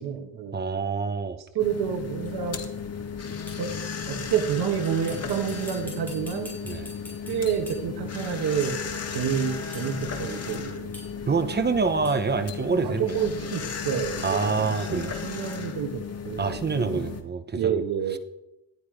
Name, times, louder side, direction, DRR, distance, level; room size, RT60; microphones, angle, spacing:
voice 1, 0.0-0.7 1.5-2.6 3.6-3.7 4.1-6.6 7.3-8.8 9.1-11.1 12.8-17.1 17.5-18.2, right 8 dB, 85° right, 6 dB, 1.7 m, -29 dB
voice 2, 0.5-1.4 6.6-6.9 11.3-13.3 14.2-15.1 16.4-17.8, right 4 dB, 25° right, 10 dB, 0.9 m, -26 dB
sound 1, 1.6-17.2, left 6 dB, 40° left, 1.9 m, -35 dB
sound 2, 2.3-2.4 3.5-3.8 4.8-8.0 8.6-8.9 9.7-9.9 10.9-11.4 12.0-12.3 13.2-13.3 14.2-14.4, left 2 dB, 5° left, 5.9 m, -46 dB
18.5 x 12.0 x 5.1 m, 0.91 s
wide cardioid pair, 165°, 37 cm